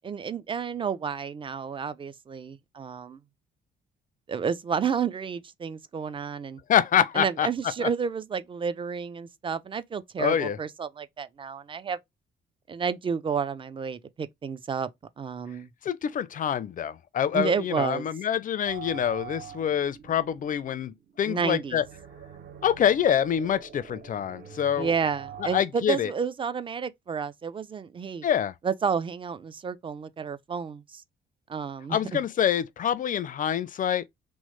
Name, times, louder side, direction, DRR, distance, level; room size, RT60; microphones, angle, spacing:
voice 1, 0.0-3.2 4.3-6.6 7.1-12.0 12.7-14.9 15.2-15.7 17.3-18.1 21.3-21.8 24.8-28.3 28.6-31.0 31.5-32.2, right 6 dB, 25° right, 0.4 m, -31 dB
voice 2, 6.7-7.5 7.8-7.9 10.2-10.6 15.8-21.8 22.6-24.9 25.4-26.1 28.2-28.5 31.9-34.0, left 9 dB, 45° left, 0.4 m, -26 dB
sound 1, 18.7-25.6, right 8 dB, 55° right, 0.7 m, -45 dB
3.1 x 2.0 x 3.0 m
cardioid pair, 90°, 20 cm